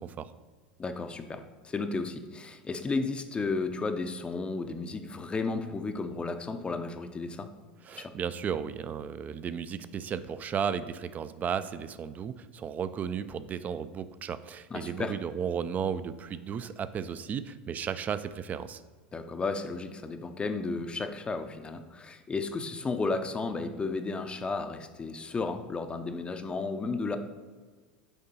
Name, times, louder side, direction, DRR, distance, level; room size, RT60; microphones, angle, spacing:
voice 1, 0.8-7.5 7.9-8.1 14.7-15.1 19.1-27.2, left 3 dB, 20° left, 8 dB, 0.5 m, -33 dB
voice 2, 7.8-18.8, right 7 dB, 30° right, 13 dB, 0.4 m, -34 dB
6.8 x 4.4 x 4.2 m, 1.5 s
hypercardioid pair, 90°, 5 cm